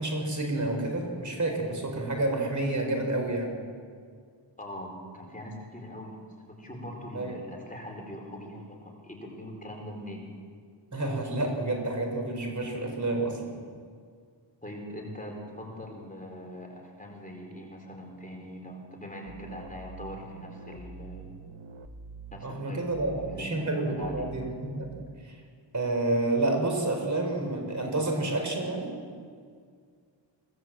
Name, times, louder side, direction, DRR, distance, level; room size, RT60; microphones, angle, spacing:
voice 1, 0.0-3.6 7.1-7.4 10.9-13.6 22.4-24.5 24.8-24.9 25.2-25.4 25.7-28.9, right 2 dB, 40° right, 3 dB, 4.6 m, -29 dB
voice 2, 4.6-6.2 6.5-10.2 14.6-21.4 22.3-24.3, equal, 15° left, 1 dB, 4.4 m, -42 dB
sound 1, 19.3-24.8, right 4 dB, 85° right, 1.5 m, -46 dB
23.5 x 18.0 x 7.6 m, 2.1 s
wide cardioid pair, 140°, 45 cm